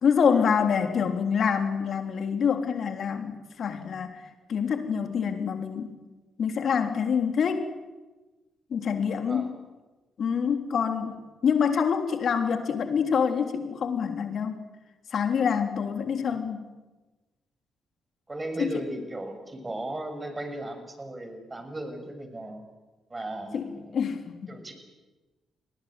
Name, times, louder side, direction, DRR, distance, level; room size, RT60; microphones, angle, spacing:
voice 1, 0.0-5.9 6.4-7.7 8.7-9.6 10.2-11.2 11.4-14.6 15.1-16.7 18.6-18.8 23.5-24.6, left 6 dB, 55° left, 6 dB, 3.5 m, -26 dB
voice 2, 9.2-9.5 16.3-16.4 18.3-22.6 23.1-24.0 24.5-24.7, right 1 dB, 25° right, 7 dB, 6.7 m, -36 dB
28.5 x 22.0 x 7.8 m, 1.2 s
hypercardioid pair, 40°, 0 cm